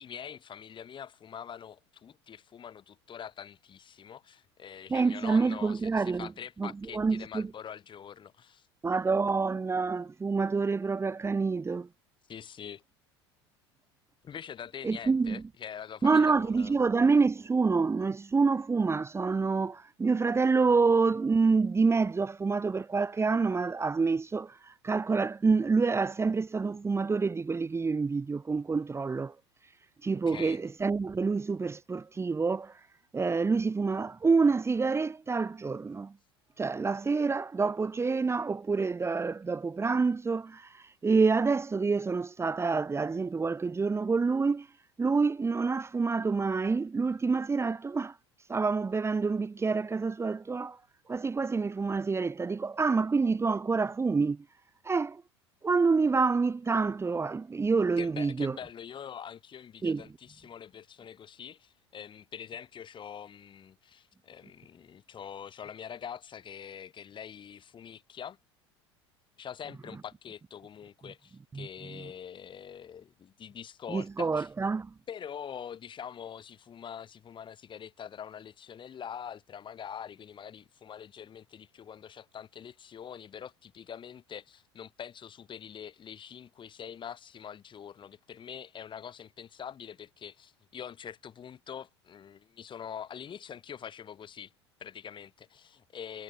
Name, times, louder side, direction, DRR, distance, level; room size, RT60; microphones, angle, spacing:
voice 1, 0.0-8.7 12.3-12.8 14.2-16.7 30.3-30.6 58.0-68.4 69.4-74.5 75.1-94.5 94.8-96.2, left 8 dB, 35° left, 5.4 m, -44 dB
voice 2, 4.9-6.3 6.6-7.5 8.8-11.9 14.8-15.4 16.0-29.3 30.0-32.8 33.1-36.1 36.6-44.7 45.0-48.2 48.5-50.8 51.1-54.4 54.8-55.2 55.6-58.6 59.8-60.0 71.5-72.0 73.9-74.9, right 4 dB, 20° right, 1.9 m, -27 dB
figure-of-eight pair, 75°, 15 cm